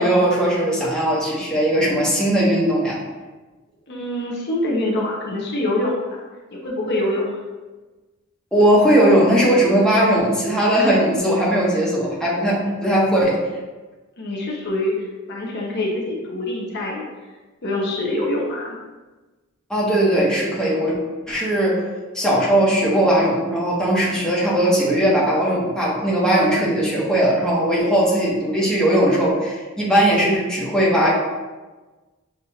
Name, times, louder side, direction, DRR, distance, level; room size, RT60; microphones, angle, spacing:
voice 1, 0.0-3.0 8.5-13.4 19.7-20.9 21.3-21.8 22.1-31.1, right 1 dB, 5° left, -6 dB, 1.1 m, -18 dB
voice 2, 3.9-6.2 6.5-7.3 14.2-17.0 17.6-18.8, left 1 dB, 55° left, -2 dB, 0.8 m, -25 dB
7.2 x 2.6 x 2.8 m, 1.2 s
head